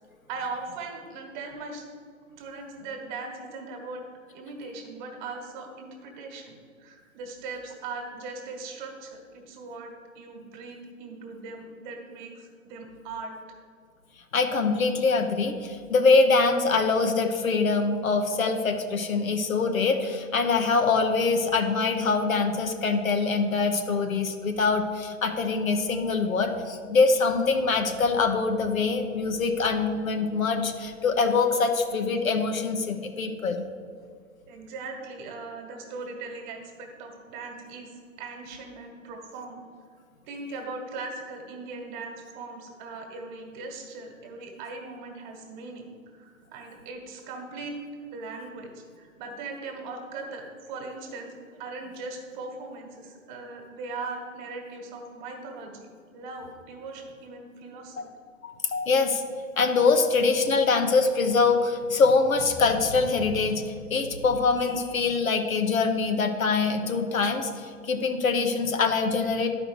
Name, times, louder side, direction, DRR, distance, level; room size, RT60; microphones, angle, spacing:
voice 1, 0.3-1.9 2.4-4.0 4.3-13.3 34.5-39.7 40.2-45.9 46.1-47.8 48.1-55.9 56.1-58.0, right 3 dB, 35° right, 3 dB, 1.5 m, -39 dB
voice 2, 14.3-33.6 58.4-59.2 59.6-69.5, left 4 dB, 75° left, 5 dB, 1.1 m, -24 dB
11.5 x 4.9 x 4.7 m, 2.2 s
figure-of-eight pair, 115°, 41 cm